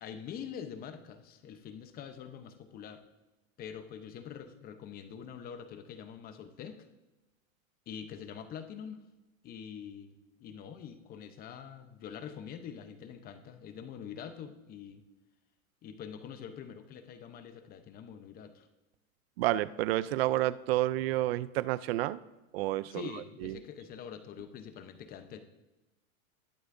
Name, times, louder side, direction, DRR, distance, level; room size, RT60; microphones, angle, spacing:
voice 1, 0.0-3.0 3.6-6.9 7.9-9.0 9.4-15.0 15.8-18.7 22.8-25.4, left 8 dB, 20° left, 9 dB, 0.8 m, -45 dB
voice 2, 19.4-22.2 22.5-23.0 23.4-23.5, right 15 dB, 50° right, 17 dB, 0.5 m, -29 dB
20.5 x 8.0 x 2.6 m, 1.0 s
supercardioid pair, 140°, 40 cm